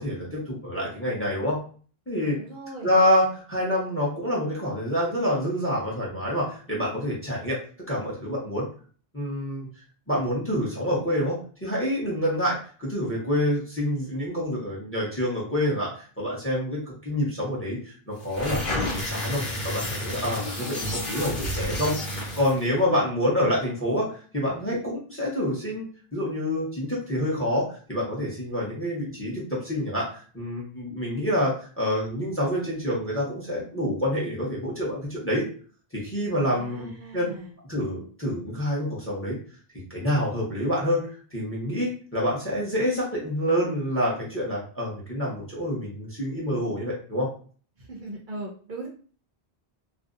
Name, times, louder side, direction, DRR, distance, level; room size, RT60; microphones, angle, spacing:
voice 1, 0.0-1.6 2.1-2.4 2.8-7.6 7.9-8.7 9.1-9.7 10.1-22.0 22.3-25.9 26.1-35.5 35.9-37.3 37.7-39.4 39.9-47.3, equal, 15° left, -4 dB, 0.7 m, -27 dB
voice 2, 2.2-2.9 36.5-37.5 47.8-48.9, right 2 dB, 60° right, -1 dB, 0.6 m, -39 dB
sound 1, 18.2-22.6, left 1 dB, 60° left, 1.1 m, -30 dB
2.5 x 2.0 x 2.4 m, 0.41 s
omnidirectional pair, 1.0 m